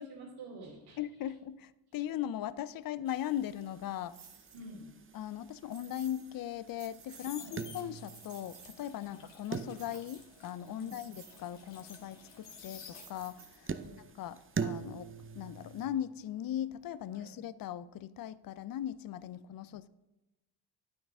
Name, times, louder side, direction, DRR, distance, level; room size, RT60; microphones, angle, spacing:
voice 1, 0.0-1.3 4.5-4.9 7.4-7.6 9.1-9.2 10.8-11.0 13.8-14.0 17.1-17.3, right 2 dB, 90° right, 3.1 m, -49 dB
voice 2, 1.0-4.2 5.1-13.7 14.2-15.1 15.4-19.9, left 11 dB, 50° left, 0.5 m, -39 dB
sound 1, 3.1-15.9, right 6 dB, 30° right, 0.6 m, -44 dB
sound 2, 4.1-4.6 5.7-6.3 6.7-7.4 7.8-9.0 9.8-10.5 10.9-11.4 13.0-13.8, right 6 dB, 60° right, 1.5 m, -55 dB
sound 3, 6.7-13.5 13.8-16.7 17.0-17.3, left 6 dB, 70° left, 2.0 m, -53 dB
9.6 x 9.1 x 3.5 m
cardioid pair, 75°, 45 cm